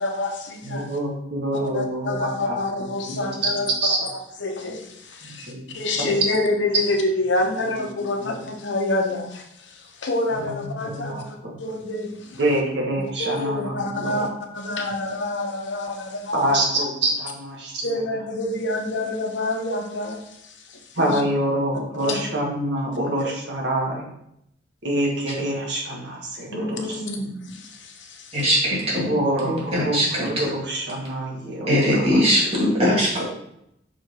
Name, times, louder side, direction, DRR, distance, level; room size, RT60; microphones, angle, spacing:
voice 1, 0.0-0.9 1.7-4.1 4.4-12.4 13.0-16.5 17.8-21.2 22.0-22.2 26.5-28.5, left 2 dB, 75° left, 3 dB, 1.1 m, -27 dB
voice 2, 0.6-2.6 3.1-4.0 5.2-6.1 10.7-11.6 12.4-14.3 16.3-17.9 21.0-24.1 24.8-27.0 29.1-32.5, right 1 dB, 65° right, -2 dB, 1.9 m, -26 dB
voice 3, 28.3-29.1 29.4-30.3 31.7-33.3, equal, 35° right, -5 dB, 2.6 m, -20 dB
6.1 x 4.5 x 4.6 m, 0.77 s
head